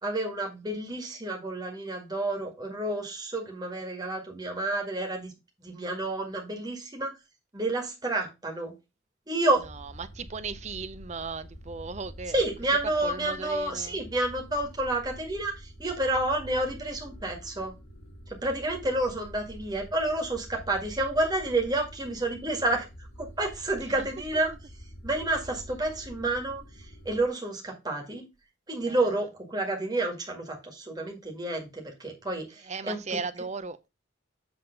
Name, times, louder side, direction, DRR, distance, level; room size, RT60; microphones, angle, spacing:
voice 1, 0.0-5.3 5.6-7.1 7.5-8.7 9.3-9.6 12.3-17.7 18.4-22.8 23.2-24.5 25.0-26.6 27.0-28.2 28.7-32.6 32.9-33.0, right 2 dB, 20° right, 1.9 m, -29 dB
sound 1, 9.5-27.3, equal, 90° left, 2.4 m, -46 dB
voice 2, 9.7-12.4 13.0-14.0 24.0-24.1 24.5-24.6 28.9-29.1 32.6-33.8, right 4 dB, 35° right, 0.5 m, -37 dB
8.0 x 3.6 x 5.2 m
head